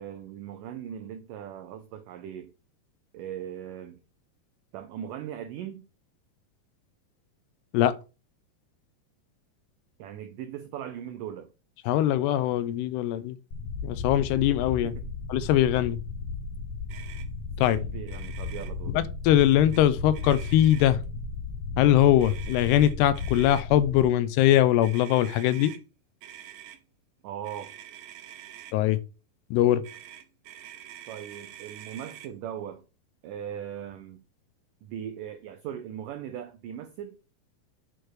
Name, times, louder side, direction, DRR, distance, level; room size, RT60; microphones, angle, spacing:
voice 1, 0.0-2.5 3.1-4.0 4.7-5.9 10.0-11.5 14.8-15.1 17.7-19.0 27.2-27.7 31.1-32.8 33.2-34.2 34.8-37.2, right 9 dB, 90° right, 1.8 m, -39 dB
voice 2, 11.9-13.4 13.8-14.9 15.3-16.0 17.6-17.8 18.9-21.0 21.8-25.7 28.7-29.0 29.5-29.8, left 12 dB, 85° left, 2.7 m, -22 dB
sound 1, 13.5-24.0, left 3 dB, 65° left, 1.5 m, -35 dB
Motor vehicle (road), 16.9-17.3 17.6-17.8 18.0-18.7 19.5-19.8 20.1-21.0 22.2-23.6 24.4-25.8 26.2-26.8 27.4-28.8 29.8-32.3, right 11 dB, 70° right, 2.2 m, -46 dB
8.7 x 4.7 x 4.6 m
omnidirectional pair, 4.7 m